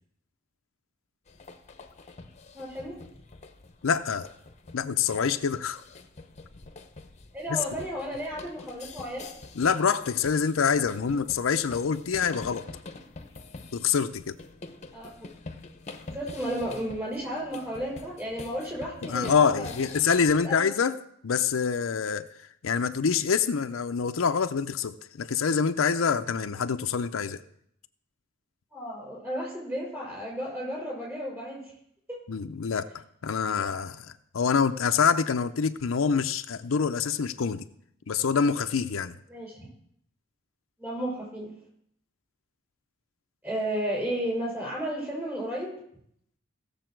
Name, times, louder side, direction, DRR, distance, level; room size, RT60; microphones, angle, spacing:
sound 1, 1.3-20.4, left 3 dB, 35° left, 0.8 m, -46 dB
voice 1, 2.5-3.0 7.3-9.3 14.9-15.3 16.1-19.7 20.4-20.6 28.7-31.7 32.1-32.2 39.3-39.7 40.8-41.5 43.4-45.7, equal, 10° right, 5.7 m, -33 dB
voice 2, 3.8-4.3 4.7-5.8 7.5-7.6 9.6-12.7 13.7-14.4 19.0-21.0 21.2-22.3 22.6-27.4 32.3-37.7 38.1-39.2, left 6 dB, 80° left, 0.5 m, -26 dB
16.5 x 6.9 x 4.5 m
head